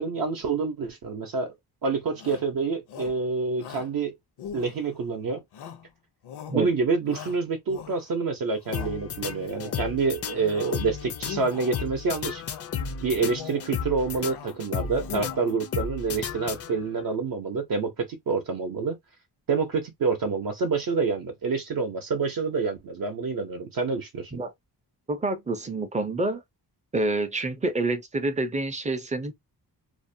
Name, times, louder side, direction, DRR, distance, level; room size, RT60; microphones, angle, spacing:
voice 1, 0.0-1.5 1.8-4.1 4.5-5.4 6.5-12.4 13.0-19.0 19.5-24.3, right 4 dB, 60° right, 0.6 m, -27 dB
Shout, 2.1-2.5 2.9-3.2 3.6-3.9 4.4-5.1 5.5-5.9 6.2-6.6 7.1-8.2 8.6-9.0 9.4-9.9 10.2-10.9 11.2-11.9 12.4-12.8 13.2-13.7 14.0-14.6 14.9-15.6, left 8 dB, 80° left, 0.7 m, -41 dB
sound 1, 8.7-17.1, left 7 dB, 40° left, 0.4 m, -34 dB
voice 2, 25.1-26.4 26.9-29.3, right 2 dB, 20° right, 0.4 m, -27 dB
2.5 x 2.1 x 2.5 m
wide cardioid pair, 130°, 39 cm